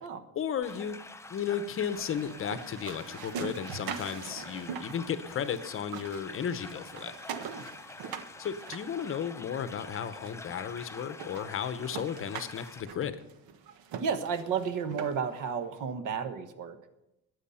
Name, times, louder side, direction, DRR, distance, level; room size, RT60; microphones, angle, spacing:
voice 1, 0.3-1.0 1.3-7.1 8.4-13.1, left 8 dB, 35° left, 12 dB, 0.8 m, -34 dB
sound 1, 0.6-12.8, left 3 dB, 10° left, 0.4 m, -47 dB
sound 2, 1.8-5.6 5.8-9.6 10.3-10.4 10.8-10.9 11.2-15.4, right 7 dB, 85° right, 1.3 m, -42 dB
voice 2, 14.0-16.8, right 6 dB, 60° right, 10 dB, 1.3 m, -32 dB
20.5 x 8.2 x 5.7 m, 0.92 s
cardioid pair, 170°, 35 cm